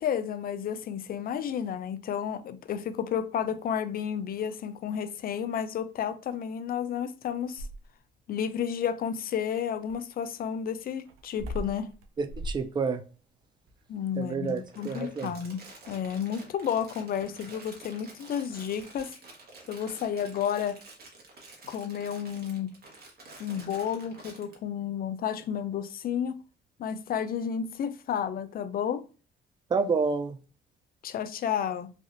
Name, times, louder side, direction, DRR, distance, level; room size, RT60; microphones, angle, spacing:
voice 1, 0.0-7.7 8.3-11.9 13.9-19.2 19.7-20.8 21.7-22.7 23.4-26.4 26.8-29.0 31.0-31.9, left 8 dB, 50° left, 0.4 m, -31 dB
sound 1, 7.2-8.1 9.9-16.7 17.1-17.5 18.8-19.1, equal, 90° right, 0.4 m, -42 dB
voice 2, 12.2-13.0 14.2-15.3 29.7-30.4, right 4 dB, 25° right, 0.4 m, -29 dB
Crumpling crinkling, 14.5-24.5, right 2 dB, 55° right, 1.1 m, -49 dB
3.3 x 2.4 x 2.5 m
cardioid pair, 90°, 20 cm